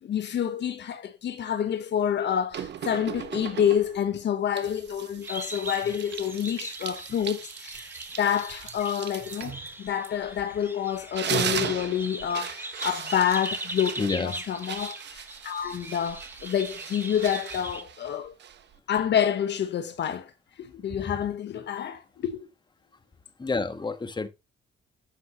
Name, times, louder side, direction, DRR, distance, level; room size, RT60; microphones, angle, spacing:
voice 1, 0.0-7.9 8.2-18.3 18.9-20.3 20.6-22.5, left 9 dB, 60° left, 1.2 m, -28 dB
sound 1, 2.5-4.1 4.6-10.6 11.0-18.8, right 9 dB, 60° right, 1.1 m, -37 dB
sound 2, 5.2-17.8, right 1 dB, 10° right, 1.8 m, -40 dB
voice 2, 14.0-14.3 20.9-21.1 23.4-24.3, left 4 dB, 20° left, 1.5 m, -29 dB
9.3 x 8.8 x 3.0 m
cardioid pair, 90°, 20 cm